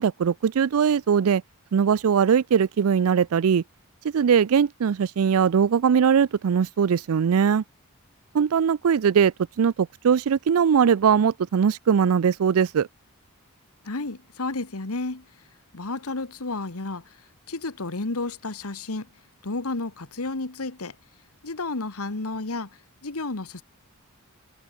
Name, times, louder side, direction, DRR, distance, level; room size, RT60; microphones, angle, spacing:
voice 1, 0.0-1.4 1.7-3.6 4.1-7.6 8.3-12.9, right 7 dB, 80° right, 0.4 m, -20 dB
voice 2, 13.8-15.2 15.7-17.2 17.5-19.1 19.4-20.9 21.4-23.6, left 3 dB, 85° left, 1.6 m, -31 dB
head